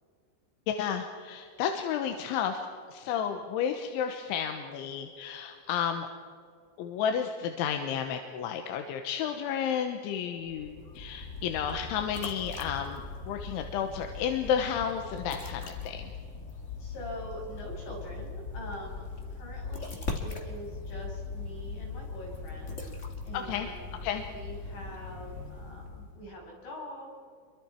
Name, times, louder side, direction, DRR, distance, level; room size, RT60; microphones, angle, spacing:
voice 1, 0.7-2.6 2.9-6.1 6.8-16.1 23.3-24.3, left 8 dB, 85° left, 5 dB, 3.5 m, -32 dB
sound 1, 10.4-26.3, left 4 dB, 55° left, 0.8 m, -40 dB
voice 2, 16.8-19.0 19.3-24.0 24.3-27.1, equal, 70° left, -2 dB, 8.7 m, -44 dB
29.0 x 23.5 x 4.6 m, 2.2 s
omnidirectional pair, 5.4 m